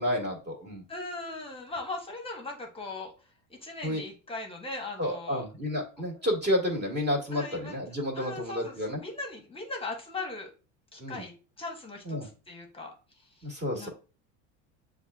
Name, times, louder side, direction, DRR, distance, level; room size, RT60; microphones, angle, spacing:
voice 1, 0.0-0.8 3.8-4.0 5.0-9.0 11.0-11.2 12.1-12.3 13.4-13.9, left 1 dB, 25° right, -1 dB, 1.7 m, -30 dB
voice 2, 0.9-3.1 3.5-5.5 6.0-6.1 7.3-7.8 8.1-10.5 10.9-11.3 11.6-13.3 13.8-13.9, left 2 dB, 15° left, 1 dB, 1.1 m, -39 dB
7.0 x 2.5 x 2.3 m, 0.35 s
hypercardioid pair, 95°, 38 cm